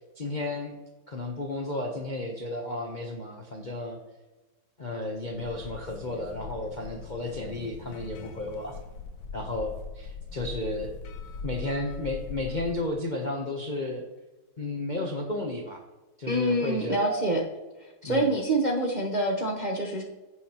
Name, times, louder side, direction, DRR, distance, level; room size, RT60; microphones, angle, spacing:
voice 1, 0.2-0.8 1.1-4.0 4.8-8.8 9.3-11.0 11.4-14.0 14.6-15.8 16.2-17.3 18.0-18.3, left 2 dB, 40° left, 0 dB, 0.7 m, -33 dB
sound 1, 5.2-12.7, left 5 dB, 85° left, 1.7 m, -41 dB
voice 2, 16.3-17.4 18.0-20.0, right 1 dB, 35° right, -1 dB, 0.8 m, -26 dB
15.0 x 6.3 x 2.9 m, 1.2 s
omnidirectional pair, 2.1 m